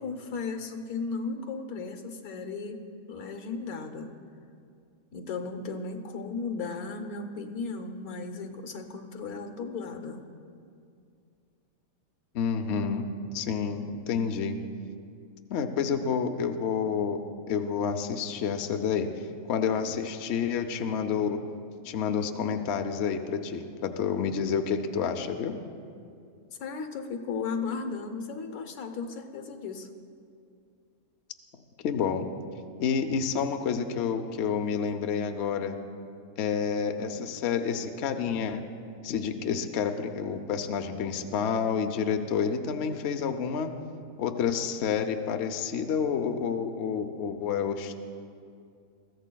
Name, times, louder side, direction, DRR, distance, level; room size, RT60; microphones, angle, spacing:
voice 1, 0.0-2.8 3.1-4.1 5.1-10.2 26.6-29.9, left 4 dB, 85° left, 6 dB, 1.4 m, -35 dB
voice 2, 12.3-13.1 13.3-14.6 15.5-17.2 17.5-19.1 19.5-21.4 21.8-25.5 31.8-32.3 32.8-35.8 36.4-38.6 39.0-43.7 44.2-48.0, left 6 dB, 60° left, 6 dB, 0.8 m, -29 dB
21.5 x 15.0 x 2.3 m, 2.4 s
omnidirectional pair, 1.5 m